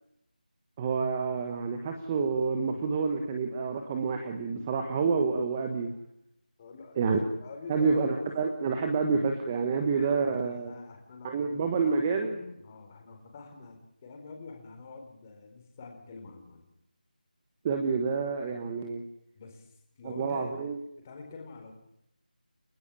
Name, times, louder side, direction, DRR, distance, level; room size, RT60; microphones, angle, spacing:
voice 1, 0.8-5.9 7.0-7.2 7.7-10.7 11.2-12.4 17.6-19.0 20.0-20.8, right 5 dB, 15° right, 5 dB, 1.3 m, -28 dB
voice 2, 6.6-8.2 8.7-8.8 9.9-10.1 10.4-16.7 19.3-20.5 21.0-21.7, left 4 dB, 15° left, 3 dB, 4.1 m, -46 dB
29.5 x 13.0 x 9.9 m, 0.79 s
figure-of-eight pair, 175°, 5 cm